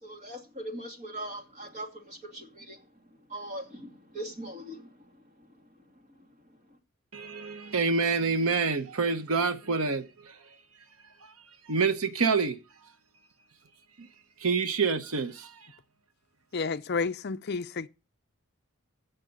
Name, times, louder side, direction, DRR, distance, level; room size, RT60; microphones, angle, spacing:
voice 1, 0.0-2.8 3.3-4.9, right 1 dB, 35° right, 2.5 m, -40 dB
voice 2, 7.1-10.4 11.2-11.3 11.7-12.6 14.0-14.1 14.4-15.6, right 4 dB, 75° right, 0.9 m, -27 dB
voice 3, 16.5-17.9, left 4 dB, 50° left, 0.5 m, -31 dB
15.5 x 6.7 x 5.3 m
head